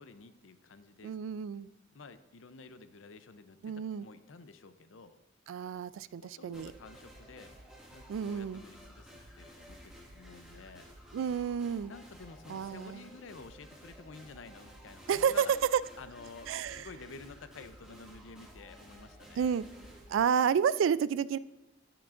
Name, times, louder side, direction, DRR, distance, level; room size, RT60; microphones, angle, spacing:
voice 1, 0.0-1.2 1.9-5.2 6.2-7.5 7.9-10.9 11.9-15.5 16.0-19.5, left 4 dB, 80° left, 11 dB, 0.6 m, -51 dB
voice 2, 1.0-1.7 3.6-4.1 5.5-6.7 8.1-8.6 11.1-11.9 12.5-13.0 15.1-15.5 16.5-16.8 19.4-19.6 20.1-21.4, right 7 dB, 80° right, 17 dB, 0.3 m, -30 dB
sound 1, 6.5-20.1, equal, 5° right, 2.0 m, -53 dB
17.5 x 5.9 x 2.5 m, 1.0 s
head